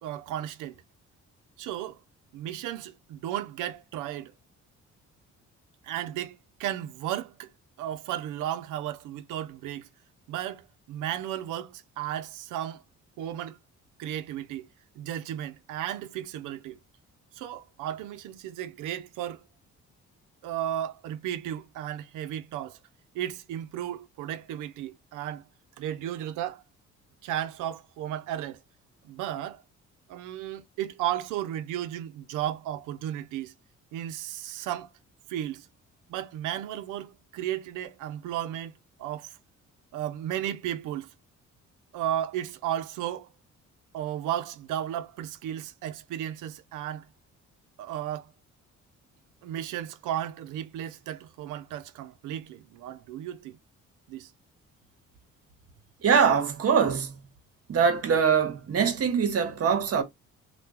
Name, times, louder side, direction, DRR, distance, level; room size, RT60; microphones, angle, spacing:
voice 1, 0.0-0.8 1.6-2.0 2.3-4.3 5.8-7.5 7.8-9.9 10.3-12.8 13.2-13.6 14.0-14.7 15.0-16.8 17.4-19.4 20.4-22.8 23.1-25.4 25.8-26.6 27.2-28.6 29.0-29.6 30.1-33.5 33.9-34.9 35.3-35.7 36.1-39.4 39.9-41.1 41.9-43.3 43.9-47.1 47.8-48.3 49.4-53.6 54.1-54.3, right 11 dB, 85° right, 0.5 m, -34 dB
voice 2, 56.0-57.2 57.7-60.0, right 6 dB, 50° right, 0.9 m, -23 dB
2.8 x 2.2 x 3.6 m
cardioid pair, 90°, 30 cm